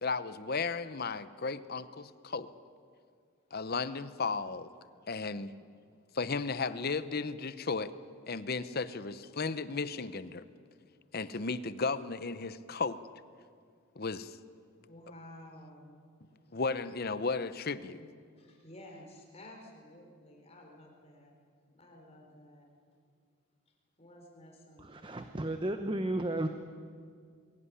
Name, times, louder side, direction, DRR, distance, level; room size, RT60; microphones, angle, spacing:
voice 1, 0.0-2.5 3.5-4.7 5.1-5.5 6.1-7.9 8.3-10.4 11.1-13.0 13.9-14.4 16.5-18.0, left 4 dB, 45° left, 14 dB, 0.8 m, -34 dB
voice 2, 4.9-5.8 10.3-10.4 14.9-16.1 16.4-16.5 18.0-21.3 21.7-22.8 23.7-25.2, left 1 dB, 30° left, 1 dB, 4.3 m, -54 dB
voice 3, 24.8-26.5, right 1 dB, 20° right, 7 dB, 0.8 m, -33 dB
22.5 x 17.0 x 9.8 m, 2.1 s
head